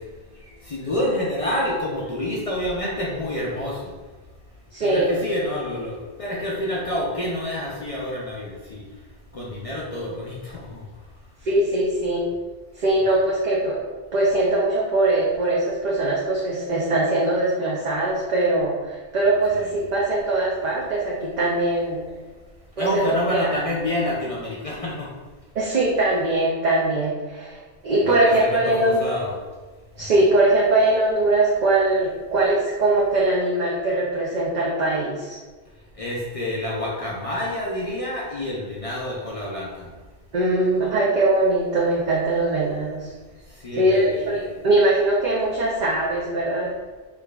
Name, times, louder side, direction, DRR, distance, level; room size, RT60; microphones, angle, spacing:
voice 1, 0.6-3.9 4.8-8.8 9.3-10.8 19.5-19.7 22.8-25.1 28.1-29.3 36.0-39.9 43.6-44.5, left 1 dB, 50° left, -4 dB, 0.5 m, -28 dB
voice 2, 4.7-5.2 11.4-12.2 12.8-13.8 14.1-22.0 22.8-23.1 23.4-23.6 25.5-29.0 30.0-35.4 40.3-43.1 43.8-44.4 44.6-46.7, right 2 dB, 55° right, -4 dB, 0.6 m, -21 dB
4.5 x 2.4 x 2.3 m, 1.3 s
omnidirectional pair, 1.0 m